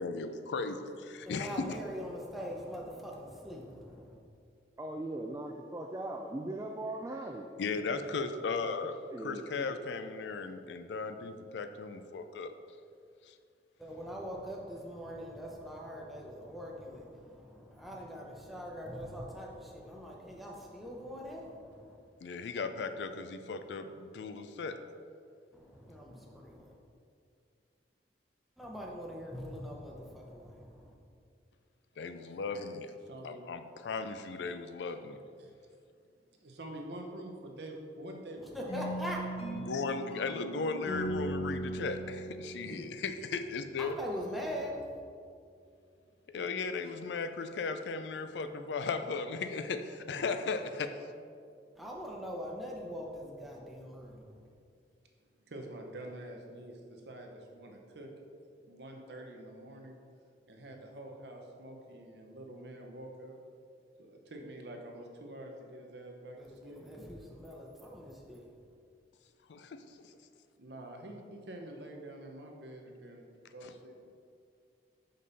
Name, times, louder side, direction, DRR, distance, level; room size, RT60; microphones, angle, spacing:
voice 1, 0.0-1.8 7.6-9.0 9.2-12.5 22.2-24.8 32.0-32.9 33.2-35.2 39.5-44.0 46.3-51.0 69.5-69.8 73.6-73.7, left 4 dB, 75° left, 9 dB, 0.4 m, -36 dB
voice 2, 1.2-4.2 13.8-22.0 25.5-26.7 28.6-30.7 38.5-39.2 43.8-44.7 51.8-54.2 66.4-68.5, equal, ahead, -2 dB, 0.8 m, -42 dB
voice 3, 4.8-8.0 9.1-9.4, right 1 dB, 15° right, 1 dB, 0.3 m, -39 dB
voice 4, 33.1-33.4 35.4-35.5 36.4-38.7 42.6-42.8 55.5-58.1 58.5-60.0 60.5-63.4 64.0-66.9 70.6-73.2 73.5-74.1, right 1 dB, 70° right, 2 dB, 0.8 m, -47 dB
sound 1, 38.7-43.6, right 1 dB, 35° left, 0.9 m, -39 dB
5.5 x 5.3 x 4.0 m, 2.3 s
head